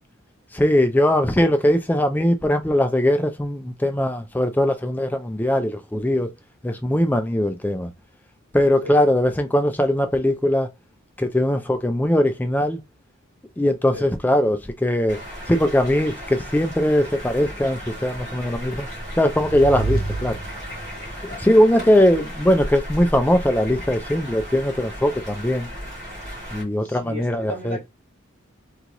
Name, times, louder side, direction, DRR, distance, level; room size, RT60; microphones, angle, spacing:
voice 1, 0.5-6.3 6.6-7.9 8.5-10.7 11.2-12.8 13.6-15.2 15.5-18.9 19.2-20.4 21.4-25.7 26.5-27.8, left 1 dB, 10° left, 0.4 m, -20 dB
sound 1, 15.1-26.6, equal, 35° right, 1.9 m, -35 dB
sound 2, 18.8-21.1, right 3 dB, 85° right, 0.7 m, -29 dB
voice 2, 26.8-27.9, left 1 dB, 60° right, 2.5 m, -35 dB
3.8 x 2.3 x 2.9 m
head